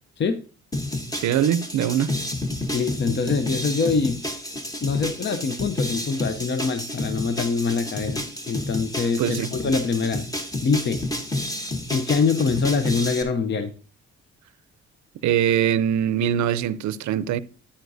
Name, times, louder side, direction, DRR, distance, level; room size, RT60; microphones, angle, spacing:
sound 1, 0.7-13.2, left 1 dB, 10° left, 1.1 m, -30 dB
voice 1, 1.1-2.1 9.0-9.5 15.2-17.4, right 10 dB, 70° right, 0.6 m, -22 dB
voice 2, 2.7-4.2 4.8-10.3 10.6-11.0 11.9-13.7, left 5 dB, 40° left, 0.6 m, -24 dB
9.3 x 8.8 x 2.7 m
cardioid pair, 90°, 30 cm